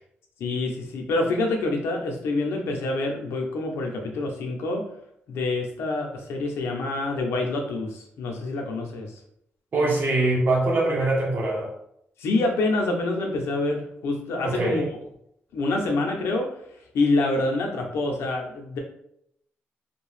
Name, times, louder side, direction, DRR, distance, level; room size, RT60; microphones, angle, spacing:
voice 1, 0.4-4.8 5.3-9.1 12.2-14.8 15.5-16.5 16.9-18.8, left 2 dB, 90° left, 2 dB, 0.6 m, -26 dB
voice 2, 9.7-11.7 14.4-14.8, right 2 dB, 50° right, -3 dB, 0.9 m, -23 dB
2.7 x 2.2 x 3.2 m, 0.74 s
cardioid pair, 90°, 4 cm